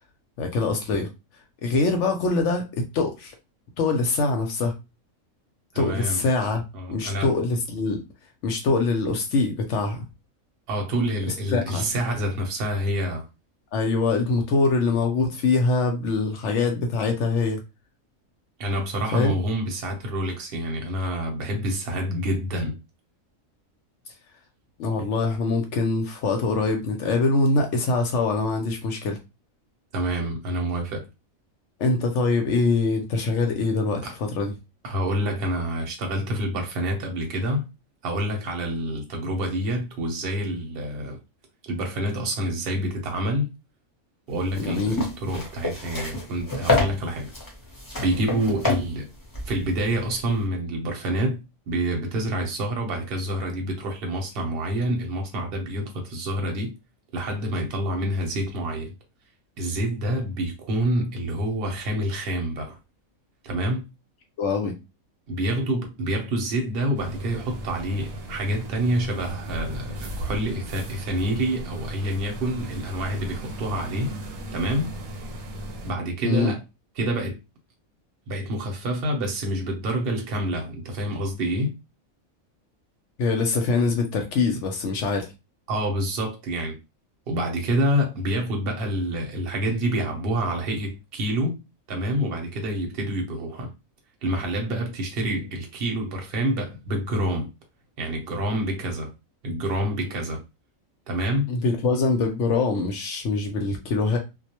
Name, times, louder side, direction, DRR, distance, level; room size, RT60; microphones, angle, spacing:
voice 1, 0.4-1.1 1.6-2.7 2.9-3.3 3.8-4.7 5.8-6.6 6.9-8.0 8.4-10.0 11.5-11.9 13.7-17.6 19.1-19.3 24.8-29.2 31.8-34.5 44.6-45.0 64.4-64.8 76.2-76.5 83.2-85.3 101.5-104.2, left 3 dB, 70° left, 0.8 m, -23 dB
voice 2, 5.7-6.2 6.7-7.3 10.7-13.3 18.6-22.8 29.9-31.1 34.0-34.1 34.8-37.6 38.0-41.2 41.6-43.5 44.3-47.3 48.0-49.1 49.4-51.4 51.7-56.7 57.1-58.9 59.6-62.8 63.4-63.8 65.3-74.1 74.5-74.9 75.8-76.6 77.0-77.4 78.3-81.7 85.7-86.8 87.3-91.6 91.9-93.7 94.2-97.5 98.0-99.1 99.4-100.4 101.1-101.5, right 1 dB, 50° right, 0.8 m, -27 dB
sound 1, 44.4-50.4, left 3 dB, 20° left, 0.6 m, -28 dB
sound 2, 67.0-75.9, equal, 80° right, 1.1 m, -36 dB
2.2 x 2.1 x 2.8 m
omnidirectional pair, 1.4 m